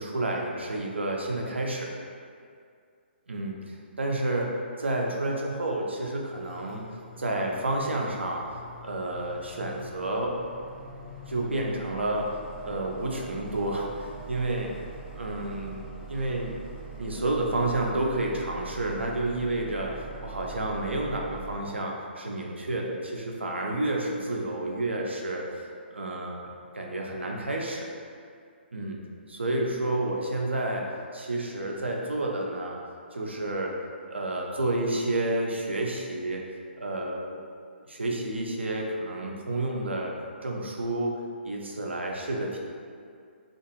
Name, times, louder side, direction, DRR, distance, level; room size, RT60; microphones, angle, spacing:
voice 1, 0.0-1.9 3.3-6.9 7.2-8.5 8.8-10.4 11.3-12.4 12.6-14.7 15.1-15.8 16.1-16.5 17.0-25.5 25.9-26.4 26.7-27.9 28.7-29.0 29.3-32.8 33.1-33.8 34.1-36.4 36.8-37.4 37.9-40.1 40.4-42.6, right 2 dB, 80° right, -1 dB, 0.5 m, -30 dB
sound 1, 6.3-21.6, right 3 dB, 5° right, 0.4 m, -44 dB
2.6 x 2.5 x 2.8 m, 2.2 s
figure-of-eight pair, 130°, 6 cm